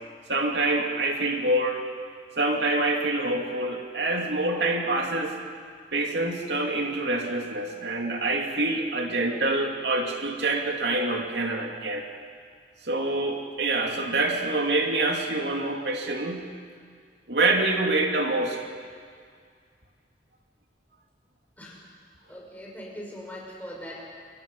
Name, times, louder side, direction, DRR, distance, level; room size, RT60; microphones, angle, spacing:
voice 1, 0.3-1.8 2.4-5.4 5.9-12.1 12.8-16.5 17.3-18.6, right 2 dB, 75° right, 2 dB, 2.7 m, -26 dB
voice 2, 22.3-24.0, equal, 10° left, -3 dB, 5.9 m, -40 dB
29.5 x 26.5 x 5.5 m, 2.1 s
head